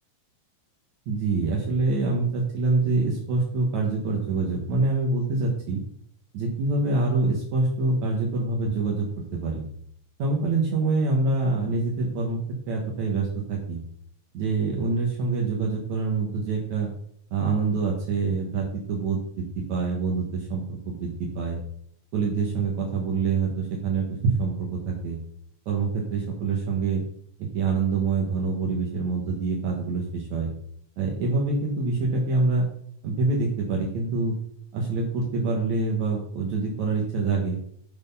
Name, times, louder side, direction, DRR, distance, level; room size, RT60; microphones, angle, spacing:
voice 1, 1.1-5.8 6.3-9.1 9.3-9.6 10.2-12.4 12.7-13.8 14.3-16.9 17.3-21.6 22.1-25.2 25.7-27.0 27.4-30.5 31.0-32.7 33.0-34.3 34.7-37.6, right 3 dB, 70° right, -1 dB, 2.8 m, -25 dB
12.5 x 4.4 x 5.5 m, 0.65 s
omnidirectional pair, 3.5 m